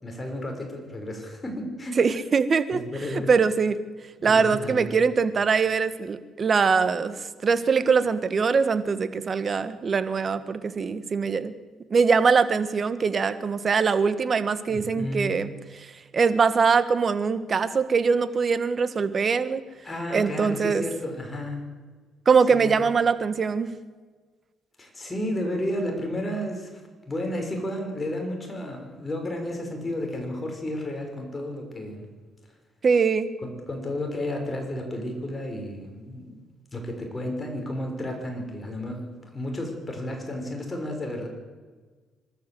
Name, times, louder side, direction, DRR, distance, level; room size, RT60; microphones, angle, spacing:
voice 1, 0.0-2.0 2.7-3.3 4.2-4.9 14.7-15.4 19.8-21.6 22.5-22.8 24.8-26.7 27.0-32.1 33.4-36.4 36.7-41.3, left 1 dB, 25° left, 2 dB, 6.2 m, -32 dB
voice 2, 2.0-2.8 3.1-3.8 4.2-7.2 7.4-11.5 11.9-15.5 15.7-19.6 20.1-20.8 22.2-23.7 32.8-33.3, right 5 dB, 40° right, 12 dB, 1.6 m, -22 dB
24.5 x 13.0 x 7.9 m, 1.4 s
cardioid pair, 85°, 0 cm